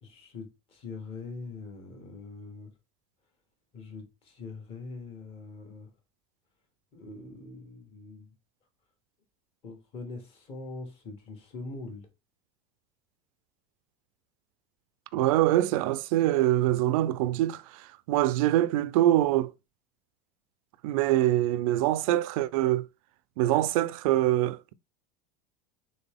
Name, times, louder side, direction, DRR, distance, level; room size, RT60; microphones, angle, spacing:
voice 1, 0.0-2.7 3.7-5.9 6.9-8.3 9.6-12.1, left 3 dB, 30° left, 1.3 m, -43 dB
voice 2, 15.1-19.5 20.8-22.8 23.4-24.7, right 14 dB, 75° right, 0.4 m, -24 dB
3.9 x 3.7 x 3.5 m
cardioid pair, 170°, 18 cm